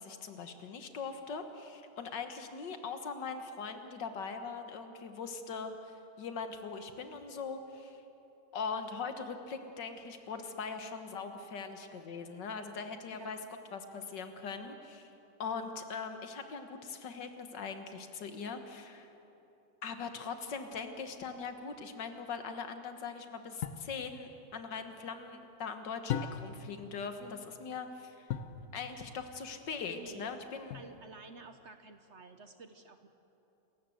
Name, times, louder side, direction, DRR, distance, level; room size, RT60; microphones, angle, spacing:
voice 1, 0.0-8.0 8.5-13.4 13.7-15.1 15.4-19.1 19.8-28.3 28.7-30.8, left 5 dB, 80° left, 7 dB, 2.0 m, -41 dB
voice 2, 13.1-13.5 29.9-30.3 30.7-33.1, right 3 dB, 50° right, 8 dB, 1.0 m, -51 dB
sound 1, 23.6-23.9 26.1-26.7 28.3-28.6 30.7-31.2, left 8 dB, 60° left, 1.2 m, -37 dB
28.0 x 13.5 x 7.8 m, 3.0 s
omnidirectional pair, 1.9 m